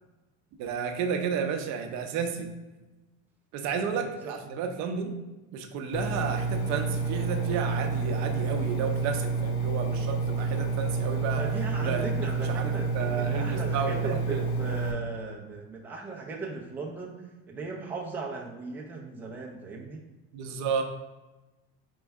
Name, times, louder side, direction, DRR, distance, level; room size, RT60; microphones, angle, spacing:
voice 1, 0.6-2.5 3.5-5.2 5.5-11.4 11.8-12.1 12.4-14.5 20.3-20.8, right 6 dB, 55° right, 5 dB, 0.6 m, -32 dB
voice 2, 3.7-4.4 11.3-20.1, right 4 dB, 5° right, -2 dB, 0.5 m, -38 dB
Engine, 5.9-14.9, right 4 dB, 70° left, 0.8 m, -29 dB
4.5 x 3.1 x 3.4 m, 1.1 s
supercardioid pair, 130°, 33 cm